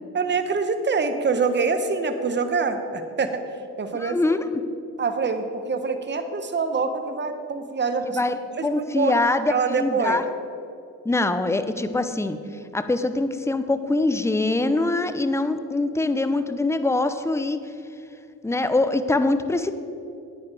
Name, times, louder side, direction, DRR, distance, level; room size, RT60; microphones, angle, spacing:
voice 1, 0.1-3.4 3.8-4.4 5.0-8.2 8.5-9.2 9.5-10.2, right 4 dB, 30° right, 8 dB, 1.0 m, -25 dB
voice 2, 4.0-4.5 8.1-8.3 8.6-10.2 11.0-12.4 12.7-17.6 18.4-19.7, left 2 dB, 10° left, 10 dB, 0.7 m, -23 dB
9.5 x 9.5 x 4.8 m, 2.6 s
supercardioid pair, 65°, 36 cm